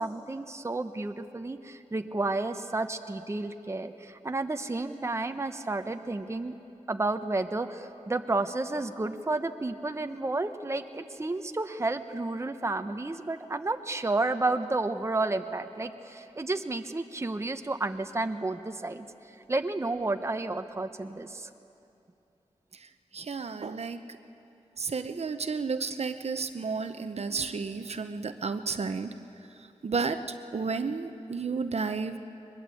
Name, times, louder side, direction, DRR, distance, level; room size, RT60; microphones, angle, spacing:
voice 1, 0.0-6.5 6.9-19.1 19.5-21.5, right 2 dB, 25° right, 7 dB, 0.9 m, -31 dB
voice 2, 23.1-24.0 24.8-29.1 29.8-30.2 30.5-32.2, right 4 dB, 60° right, 9 dB, 0.9 m, -32 dB
22.0 x 21.0 x 8.5 m, 2.8 s
wide cardioid pair, 85°, 12 cm